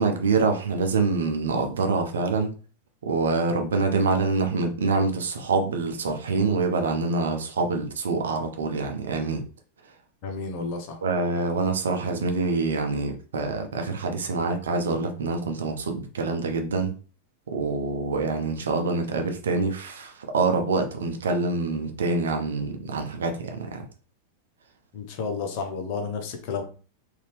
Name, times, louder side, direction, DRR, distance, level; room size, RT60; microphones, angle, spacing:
voice 1, 0.0-2.5 3.0-9.4 11.0-16.9 17.5-23.9, right 4 dB, 65° right, 5 dB, 0.8 m, -26 dB
voice 2, 10.2-11.0 24.9-26.6, left 5 dB, 45° left, 4 dB, 1.0 m, -31 dB
4.0 x 2.7 x 3.3 m, 0.37 s
figure-of-eight pair, 90°, 0 cm